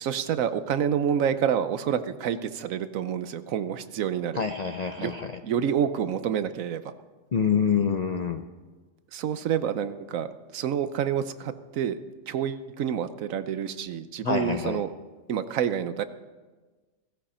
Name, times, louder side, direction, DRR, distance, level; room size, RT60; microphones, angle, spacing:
voice 1, 0.0-4.4 5.0-5.1 5.4-6.9 9.1-12.0 12.3-14.9 15.3-16.0, right 8 dB, 80° right, 12 dB, 1.1 m, -28 dB
voice 2, 4.4-5.4 7.3-8.4 14.2-14.8, left 6 dB, 60° left, 7 dB, 0.4 m, -26 dB
16.5 x 15.5 x 4.3 m, 1.3 s
omnidirectional pair, 1.4 m